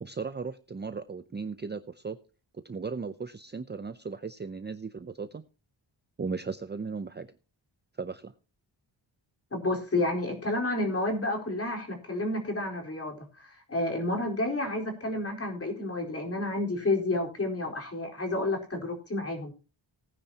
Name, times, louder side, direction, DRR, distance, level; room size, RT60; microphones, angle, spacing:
voice 1, 0.0-2.2 2.7-5.4 6.2-7.3 8.0-8.3, right 5 dB, 25° right, 10 dB, 0.6 m, -36 dB
voice 2, 9.5-19.5, left 2 dB, 30° left, 1 dB, 4.4 m, -30 dB
18.5 x 9.8 x 2.9 m, 0.32 s
wide cardioid pair, 155°, 45 cm